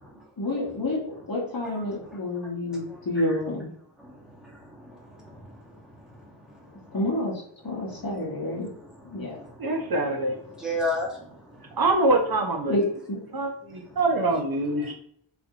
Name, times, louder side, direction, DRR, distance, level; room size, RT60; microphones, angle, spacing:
voice 1, 0.4-1.0 1.3-3.7 6.9-7.3 7.6-8.7 9.1-9.4 12.6-13.2, left 1 dB, 45° left, -3 dB, 1.0 m, -28 dB
voice 2, 2.7-3.4 4.0-5.8 7.8-8.1 8.5-9.7 10.5-11.2, left 1 dB, ahead, -4 dB, 0.9 m, -35 dB
voice 3, 9.6-10.4 11.8-12.8 13.3-14.9, right 2 dB, 50° right, 1 dB, 0.5 m, -24 dB
2.7 x 2.5 x 2.6 m, 0.66 s
wide cardioid pair, 75°, 48 cm